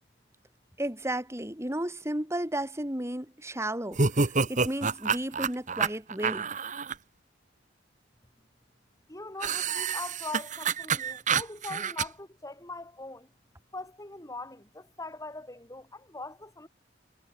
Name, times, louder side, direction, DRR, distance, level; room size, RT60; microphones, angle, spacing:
voice 1, 0.8-6.5, right 1 dB, 15° right, 4.6 m, -33 dB
sound 1, 3.9-6.9 9.4-12.0, right 5 dB, 40° right, 1.6 m, -28 dB
voice 2, 9.1-13.3 13.7-16.7, left 2 dB, 20° left, 5.6 m, -41 dB
head